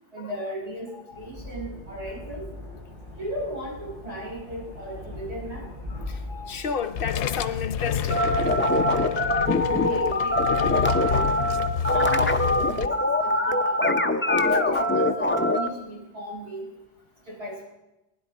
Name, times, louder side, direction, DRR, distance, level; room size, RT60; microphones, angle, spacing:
voice 1, 0.1-2.5 3.2-5.7 9.7-11.3 11.9-13.9 14.3-14.4 14.7-16.7 17.3-17.6, right 1 dB, 85° right, 5.4 m, -36 dB
voice 2, 0.9-1.3 5.9-8.3 9.8-10.2 10.9-11.1 13.8-13.9 14.5-14.8, left 6 dB, 60° left, 0.8 m, -34 dB
sound 1, 1.1-6.6, left 2 dB, 40° right, 4.8 m, -40 dB
sound 2, 6.8-12.9, left 8 dB, 90° left, 0.9 m, -29 dB
sound 3, 8.1-15.7, left 1 dB, 15° left, 0.4 m, -23 dB
19.5 x 10.5 x 4.1 m
omnidirectional pair, 1.1 m